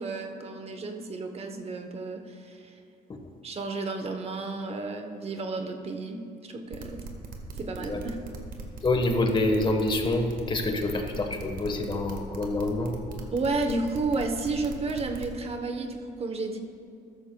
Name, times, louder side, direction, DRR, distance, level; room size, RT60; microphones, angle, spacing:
voice 1, 0.0-2.8 3.4-7.0 7.6-8.2 13.3-16.6, right 3 dB, 35° right, 5 dB, 0.9 m, -32 dB
sound 1, 6.7-15.3, right 4 dB, 55° right, 1.5 m, -40 dB
voice 2, 8.8-12.9, left 2 dB, 30° left, 5 dB, 1.2 m, -27 dB
14.0 x 13.0 x 2.2 m, 2.6 s
cardioid pair, 110°, 17 cm